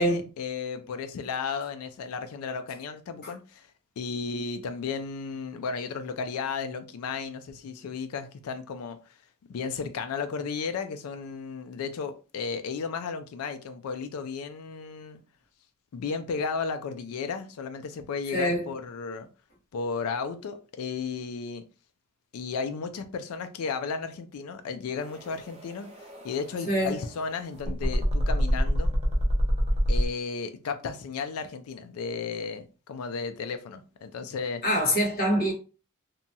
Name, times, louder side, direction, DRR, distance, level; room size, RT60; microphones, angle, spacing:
voice 1, 0.0-3.7 4.0-9.2 9.5-15.2 15.9-19.3 19.7-21.6 22.3-28.9 29.9-34.6, left 5 dB, 80° left, 0.4 m, -34 dB
voice 2, 18.3-18.7 26.7-27.0 34.6-35.5, equal, 45° left, 1.1 m, -24 dB
sound 1, 25.0-30.0, equal, 30° right, 0.6 m, -27 dB
2.8 x 2.2 x 2.7 m
head